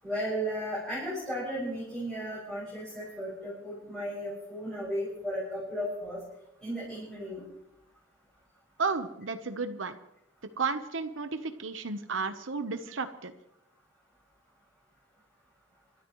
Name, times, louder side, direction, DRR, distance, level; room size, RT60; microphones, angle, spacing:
voice 1, 0.0-6.2 6.6-7.4, equal, 5° left, -9 dB, 7.0 m, -35 dB
voice 2, 8.8-10.0 10.6-13.3, right 4 dB, 75° right, 9 dB, 1.0 m, -33 dB
28.0 x 13.0 x 3.2 m, 0.83 s
head